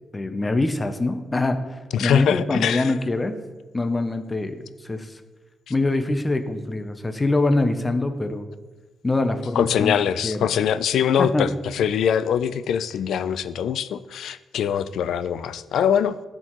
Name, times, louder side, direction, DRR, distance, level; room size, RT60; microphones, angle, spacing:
voice 1, 0.1-3.4 3.7-5.2 5.7-8.5 9.0-10.0 10.2-10.5 11.2-11.5, left 2 dB, 15° left, 8 dB, 0.5 m, -24 dB
voice 2, 1.9-2.9 9.6-16.2, left 8 dB, 80° left, 14 dB, 0.3 m, -23 dB
12.5 x 4.5 x 3.0 m, 1.2 s
cardioid pair, 135°, 0 cm